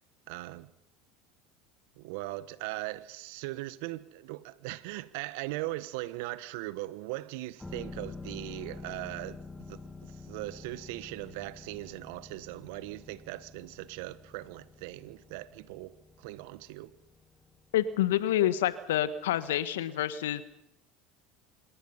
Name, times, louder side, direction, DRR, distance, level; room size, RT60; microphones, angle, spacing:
voice 1, 0.3-0.7 2.0-16.9, right 18 dB, 65° right, 1.2 m, -39 dB
sound 1, 7.6-19.2 19.5-19.6, left 3 dB, 10° left, 2.3 m, -48 dB
voice 2, 17.7-20.4, left 12 dB, 75° left, 1.6 m, -28 dB
27.0 x 21.0 x 5.7 m
hypercardioid pair, 75°, 0 cm